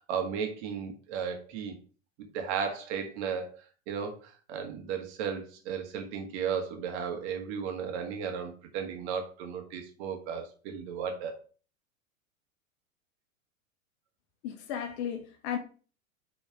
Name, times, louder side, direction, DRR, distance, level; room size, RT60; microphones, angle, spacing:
voice 1, 0.1-1.8 2.2-3.6 3.9-11.4, right 7 dB, 55° right, 1.7 m, -35 dB
voice 2, 14.4-15.6, left 9 dB, 50° left, 1.5 m, -34 dB
5.7 x 4.0 x 4.8 m
hypercardioid pair, 100°, 41 cm